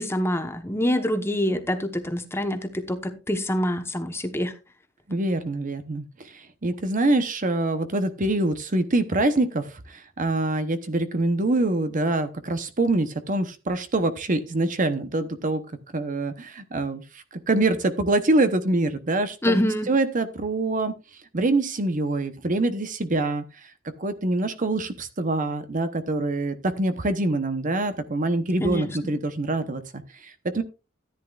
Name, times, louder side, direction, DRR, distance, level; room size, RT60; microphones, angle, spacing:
voice 1, 0.0-4.5 19.4-19.9 28.6-28.9, left 1 dB, 10° left, 1.0 m, -26 dB
voice 2, 5.1-15.6 15.9-17.0 17.3-19.5 19.9-20.9 21.3-23.4 24.0-30.6, right 2 dB, 40° right, 0.9 m, -25 dB
14.0 x 10.0 x 2.4 m
head